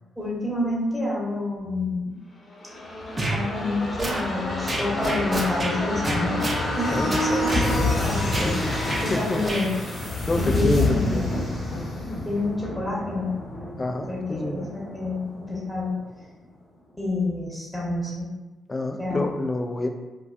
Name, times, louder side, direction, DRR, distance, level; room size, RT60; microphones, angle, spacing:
voice 1, 0.2-2.1 3.3-6.4 6.8-9.7 10.4-11.2 12.2-13.3 14.1-15.9 17.0-18.3 19.0-19.3, left 2 dB, 5° right, -6 dB, 0.9 m, -28 dB
sound 1, 2.5-16.0 16.3-16.4, left 2 dB, 45° left, 0.9 m, -28 dB
sound 2, 3.2-3.4 4.0-4.2 4.7-5.7 6.0-6.6 7.1-7.7 8.3-8.5 8.9-9.0 9.4-9.6, right 1 dB, 35° right, 0.5 m, -28 dB
voice 2, 6.9-7.2 8.3-9.4 10.3-11.3 13.8-14.7 18.7-19.9, left 2 dB, 30° left, 3 dB, 0.3 m, -28 dB
2.3 x 2.2 x 2.4 m, 1.2 s
hypercardioid pair, 40°, 0 cm